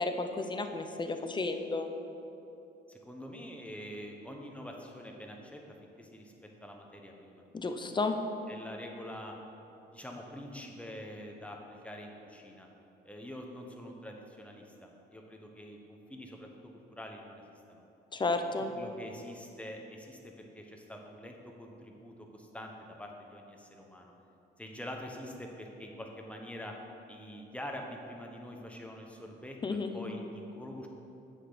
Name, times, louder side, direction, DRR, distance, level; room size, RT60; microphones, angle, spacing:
voice 1, 0.0-1.9 7.5-8.2 18.1-18.7 29.6-30.0, left 3 dB, 25° left, 6 dB, 0.7 m, -32 dB
voice 2, 2.9-7.4 8.5-9.3 9.9-12.7 13.0-17.4 17.7-17.8 18.7-24.1 24.6-26.7 27.1-30.9, equal, 5° left, 1 dB, 1.2 m, -45 dB
8.6 x 6.1 x 5.1 m, 2.9 s
cardioid pair, 90°, 20 cm